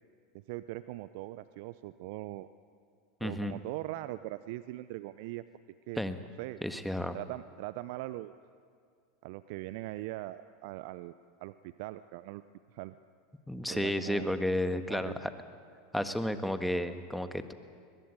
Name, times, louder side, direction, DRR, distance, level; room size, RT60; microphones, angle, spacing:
voice 1, 0.5-2.5 3.2-5.4 5.9-6.0 6.4-6.6 7.1-8.3 9.2-11.1 11.4-12.4 12.7-13.0 13.7-14.3 14.9-15.2, right 17 dB, 65° right, 14 dB, 0.6 m, -41 dB
voice 2, 3.2-3.6 6.0-6.2 6.6-7.2 13.5-15.3 15.9-17.5, left 1 dB, ahead, 9 dB, 1.5 m, -32 dB
21.5 x 21.0 x 8.2 m, 2.2 s
hypercardioid pair, 95°, 0 cm